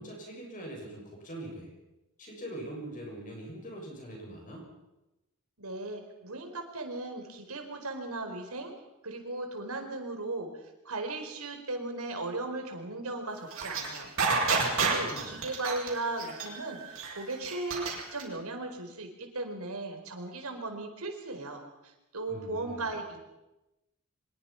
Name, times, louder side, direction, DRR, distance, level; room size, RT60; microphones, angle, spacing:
voice 1, 0.0-1.7 2.2-4.7 14.8-15.5 22.3-22.9, right 1 dB, 35° left, 0 dB, 7.1 m, -43 dB
voice 2, 5.6-8.7 9.0-10.5 10.8-23.2, right 2 dB, 85° right, 4 dB, 4.6 m, -37 dB
sound 1, 13.5-18.2, right 4 dB, 65° right, 7.0 m, -29 dB
24.5 x 22.0 x 5.9 m, 0.98 s
head